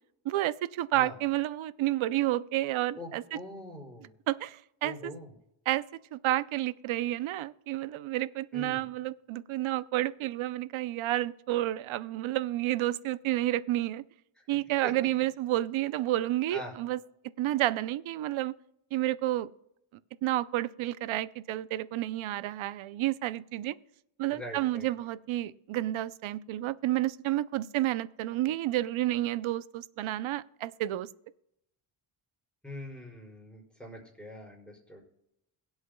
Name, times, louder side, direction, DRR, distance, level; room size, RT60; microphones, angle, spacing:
voice 1, 0.2-3.4 4.3-5.1 5.7-5.9 6.1-14.0 14.5-17.0 17.4-18.5 18.9-19.5 20.2-23.8 24.2-31.1, right 15 dB, 70° right, 17 dB, 0.6 m, -30 dB
voice 2, 3.0-4.1 4.8-5.3 8.5-8.8 14.8-14.9 16.5-16.7 24.3-24.8 32.6-35.0, left 1 dB, ahead, -4 dB, 5.1 m, -43 dB
22.5 x 8.1 x 2.2 m, 0.79 s
cardioid pair, 110°, 50 cm